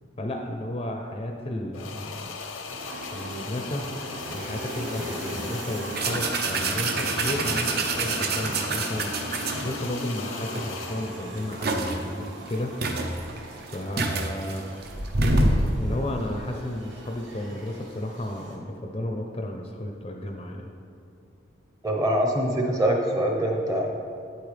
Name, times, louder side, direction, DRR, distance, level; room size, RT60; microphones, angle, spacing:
voice 1, 0.2-2.3 3.1-3.9 4.3-12.7 13.7-14.6 15.8-20.7, left 1 dB, 30° left, 3 dB, 0.5 m, -33 dB
sound 1, 1.7-11.3, left 5 dB, 80° left, 0.7 m, -38 dB
sound 2, 2.7-18.6, right 1 dB, 65° right, 1.3 m, -40 dB
sound 3, 6.0-10.0 10.6-10.7 11.1-12.0 12.5-12.6 12.8-15.7, right 2 dB, 50° right, 0.7 m, -26 dB
voice 2, 21.8-23.9, right 1 dB, 15° right, 1 dB, 0.8 m, -24 dB
8.6 x 8.6 x 3.3 m, 2.5 s
head